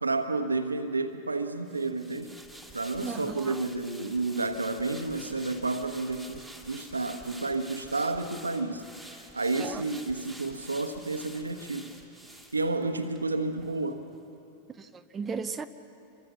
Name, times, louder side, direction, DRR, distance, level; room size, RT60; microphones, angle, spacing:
voice 1, 0.0-2.3 2.7-8.8 9.1-11.9 12.5-14.1, right 3 dB, 80° right, 8 dB, 1.3 m, -31 dB
sound 1, 1.7-13.2 13.6-13.7, right 1 dB, ahead, 2.7 m, -49 dB
voice 2, 3.0-3.6 9.6-9.8 14.8-15.7, right 5 dB, 20° right, 8 dB, 0.7 m, -36 dB
28.0 x 23.5 x 6.0 m, 2.8 s
figure-of-eight pair, 90°, 0 cm